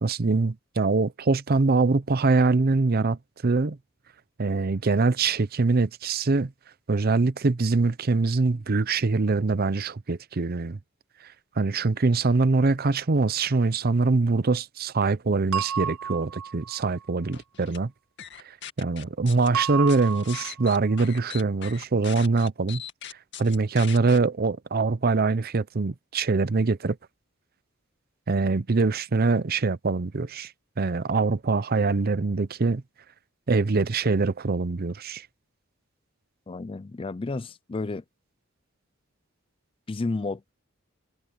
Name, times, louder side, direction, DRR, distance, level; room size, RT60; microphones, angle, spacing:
voice 1, 0.0-3.2 3.4-3.8 4.4-6.5 6.9-10.8 11.6-17.9 18.8-22.8 23.4-27.0 28.3-30.5 30.8-32.8 33.5-35.2, right 3 dB, 45° right, 0.6 m, -23 dB
sound 1, 15.5-16.8 19.5-20.8, right 7 dB, 90° right, 0.9 m, -31 dB
sound 2, 17.3-17.8 18.2-19.5 19.9-24.2, left 9 dB, 55° left, 2.2 m, -40 dB
voice 2, 36.5-38.0 39.9-40.4, left 3 dB, 25° left, 0.4 m, -31 dB
head